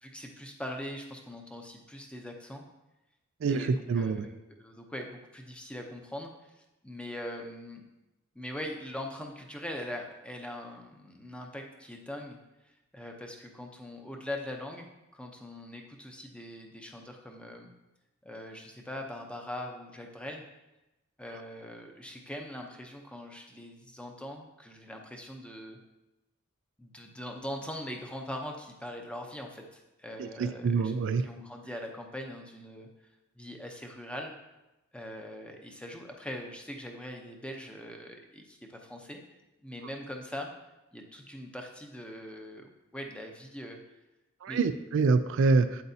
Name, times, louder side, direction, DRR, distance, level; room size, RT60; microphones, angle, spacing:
voice 1, 0.0-2.6 3.5-7.8 8.3-12.4 12.6-14.9 15.1-17.7 18.2-20.4 21.2-25.8 26.8-30.9 31.2-32.9 33.4-34.3 34.9-39.2 39.6-40.5 40.9-43.8 44.5-44.6, left 1 dB, 5° left, 2 dB, 0.7 m, -42 dB
voice 2, 3.4-4.2 30.2-31.2 44.4-45.8, right 4 dB, 60° right, 11 dB, 0.3 m, -26 dB
8.5 x 7.9 x 2.8 m, 0.99 s
head